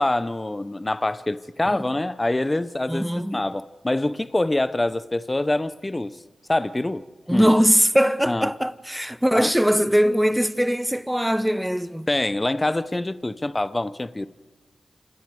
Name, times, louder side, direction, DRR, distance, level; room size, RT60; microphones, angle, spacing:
voice 1, 0.0-3.1 3.3-6.2 6.5-7.0 7.3-7.5 8.3-8.5 9.3-9.5 12.1-14.3, left 2 dB, 25° left, 0.8 m, -25 dB
voice 2, 2.9-3.4 7.3-12.1, equal, 5° right, 1.0 m, -21 dB
27.5 x 20.0 x 4.8 m
cardioid pair, 40°, 0 cm